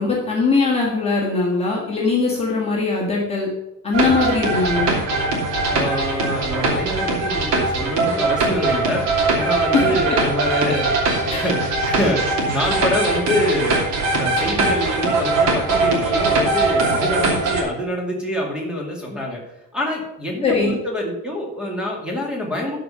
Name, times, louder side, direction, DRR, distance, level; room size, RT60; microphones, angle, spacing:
voice 1, 0.0-3.5 3.8-5.0 9.7-9.8 11.3-11.5 20.4-20.8, left 3 dB, 20° left, -4 dB, 1.8 m, -20 dB
sound 1, 3.9-17.6, right 3 dB, 60° right, 2.9 m, -21 dB
voice 2, 5.7-9.1 9.3-13.8 14.1-19.4 19.7-22.8, left 1 dB, 5° right, -2 dB, 2.2 m, -25 dB
12.5 x 5.2 x 5.6 m, 0.94 s
cardioid pair, 175°, 31 cm